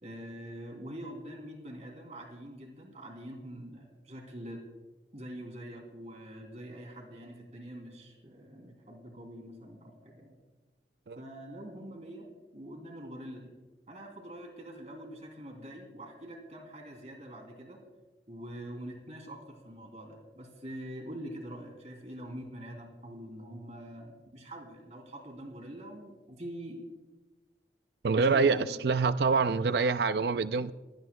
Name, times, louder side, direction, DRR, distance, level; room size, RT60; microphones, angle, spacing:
voice 1, 0.0-4.6 5.1-10.3 11.2-12.3 12.5-13.5 13.9-17.8 18.3-26.8 28.2-28.8, equal, 40° right, 3.1 m, -44 dB
voice 2, 28.0-28.6 28.8-30.7, right 4 dB, 65° right, 0.5 m, -25 dB
27.5 x 17.0 x 2.3 m
head